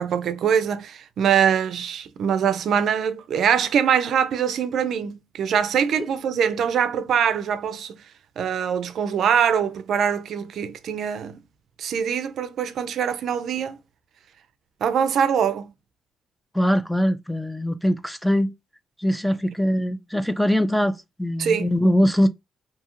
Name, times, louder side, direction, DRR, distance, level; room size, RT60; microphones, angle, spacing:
voice 1, 0.0-8.0 8.4-11.4 11.8-13.8 14.8-15.7 21.4-21.7, right 8 dB, 65° right, 0.4 m, -23 dB
voice 2, 16.5-18.5 19.0-22.3, equal, ahead, 0.4 m, -22 dB
2.7 x 2.4 x 2.9 m
cardioid pair, 90°, 0 cm